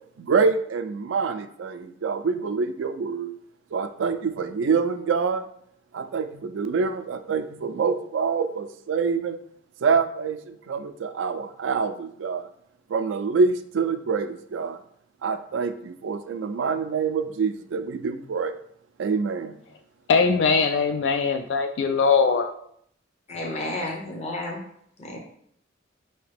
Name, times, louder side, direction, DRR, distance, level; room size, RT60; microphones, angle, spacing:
voice 1, 0.2-3.3 3.7-5.5 5.9-9.4 9.8-12.5 12.9-14.8 15.2-18.5 19.0-19.6, right 5 dB, 85° right, 9 dB, 0.4 m, -26 dB
voice 2, 20.1-22.5, left 5 dB, 65° left, 7 dB, 0.3 m, -21 dB
voice 3, 23.3-24.6 25.0-25.2, left 1 dB, 35° left, 0 dB, 0.7 m, -31 dB
4.8 x 2.8 x 3.4 m, 0.67 s
head